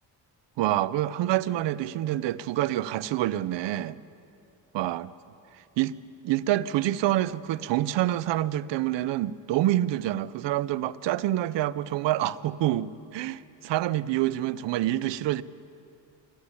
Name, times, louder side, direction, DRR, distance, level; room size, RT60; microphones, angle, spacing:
voice 1, 0.6-4.0 4.7-5.1 5.8-6.0 6.2-15.4, right 14 dB, 75° right, 0.8 m, -27 dB
24.0 x 15.0 x 9.8 m
supercardioid pair, 70°, 43 cm